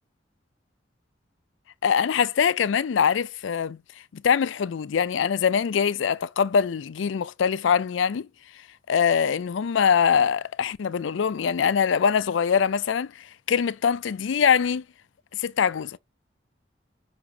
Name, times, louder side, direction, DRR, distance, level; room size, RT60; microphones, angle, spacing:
voice 1, 1.8-3.8 4.1-8.3 8.9-14.8 15.3-16.0, left 7 dB, 90° left, 0.4 m, -23 dB
5.9 x 5.8 x 2.8 m
head